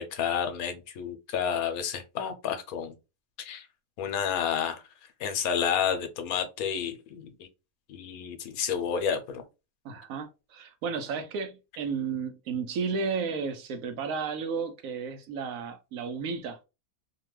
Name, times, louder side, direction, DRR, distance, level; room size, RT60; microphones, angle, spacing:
voice 1, 0.0-2.9 3.4-3.6 4.0-4.8 5.2-7.3 7.9-9.4, left 7 dB, 80° left, 1.1 m, -30 dB
voice 2, 9.8-16.6, right 5 dB, 75° right, 1.0 m, -33 dB
2.8 x 2.3 x 3.1 m
omnidirectional pair, 1.5 m